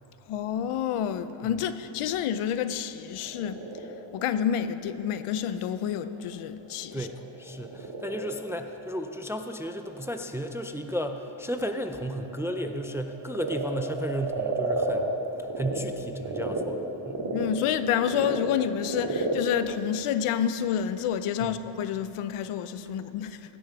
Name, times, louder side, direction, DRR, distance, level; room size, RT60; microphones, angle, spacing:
voice 1, 0.3-3.6 4.1-7.1 17.2-23.6, left 9 dB, 80° left, 12 dB, 0.7 m, -29 dB
Frog, 3.0-15.8 16.2-20.8, right 3 dB, 55° right, 2.3 m, -35 dB
voice 2, 6.9-15.1 15.6-17.2 21.4-21.6, equal, 5° right, 7 dB, 0.3 m, -34 dB
16.5 x 6.3 x 6.1 m, 3.0 s
cardioid pair, 115°, 50 cm